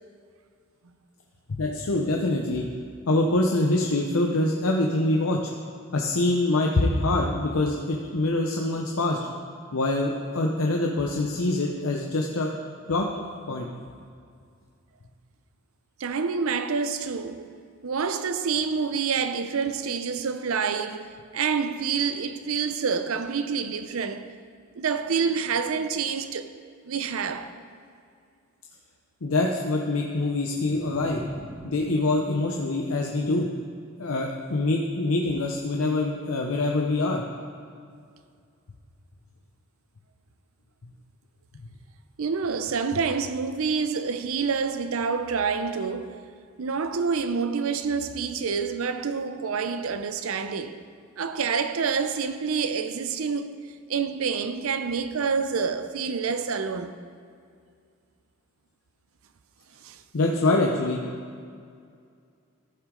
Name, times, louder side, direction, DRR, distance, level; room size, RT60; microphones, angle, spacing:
voice 1, 1.5-2.6 3.1-5.5 5.9-9.2 9.7-12.5 12.9-13.1 13.5-13.7 29.2-31.2 31.6-33.5 34.0-37.2 60.1-61.0, left 2 dB, 85° left, 0.7 m, -25 dB
voice 2, 16.0-17.5 17.8-24.3 24.8-26.5 26.8-27.5 42.2-46.2 46.6-50.8 51.2-53.6 53.9-57.0 59.8-60.0, right 5 dB, 80° right, 0.5 m, -27 dB
sound 1, 30.5-33.8, equal, 10° right, 0.6 m, -43 dB
14.5 x 6.0 x 3.8 m
head